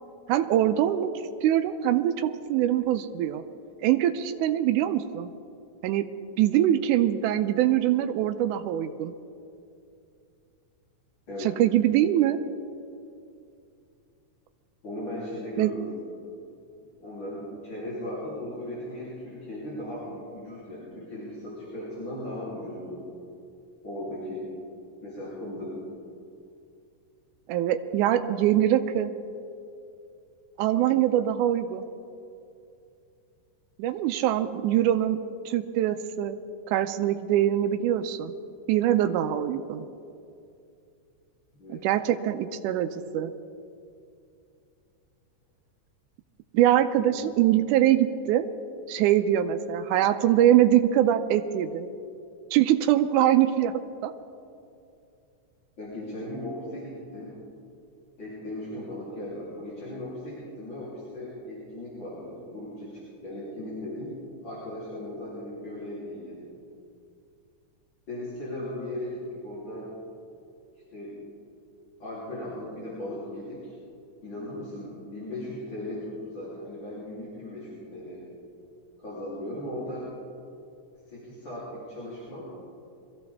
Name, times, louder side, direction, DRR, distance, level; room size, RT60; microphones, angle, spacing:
voice 1, 0.3-1.1 1.4-3.4 3.8-5.3 5.8-6.1 6.4-9.1 11.4-12.4 15.6-15.7 27.5-29.1 30.6-31.9 33.8-35.2 35.5-36.4 36.7-38.3 38.7-39.8 41.7-43.3 46.5-48.5 48.9-51.9 52.5-53.7 54.0-54.1, right 12 dB, 90° right, 8 dB, 2.1 m, -23 dB
voice 2, 14.8-16.2 17.0-23.1 23.8-24.5 25.0-25.8 41.6-41.8 46.9-47.1 55.8-57.4 58.2-66.5 68.1-69.9 70.9-71.2 72.0-73.7 74.2-78.3 79.0-80.1 81.1-82.4, left 1 dB, 40° left, -8 dB, 4.0 m, -37 dB
23.5 x 14.5 x 3.5 m, 2.5 s
omnidirectional pair, 3.5 m